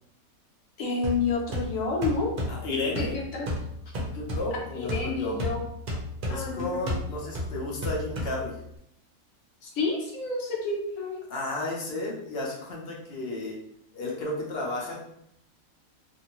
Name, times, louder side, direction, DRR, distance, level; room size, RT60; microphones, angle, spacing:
voice 1, 0.8-2.3 2.8-3.0 3.3-3.5 4.7-5.6 6.3-6.9 9.6-11.2, left 4 dB, 70° left, -1 dB, 1.1 m, -29 dB
sound 1, 1.0-8.8, left 1 dB, 50° right, 0.7 m, -34 dB
voice 2, 2.4-3.1 4.1-5.4 6.3-8.6 11.3-13.6 13.9-15.0, left 2 dB, 50° left, -2 dB, 0.8 m, -33 dB
2.6 x 2.6 x 2.9 m, 0.75 s
omnidirectional pair, 1.5 m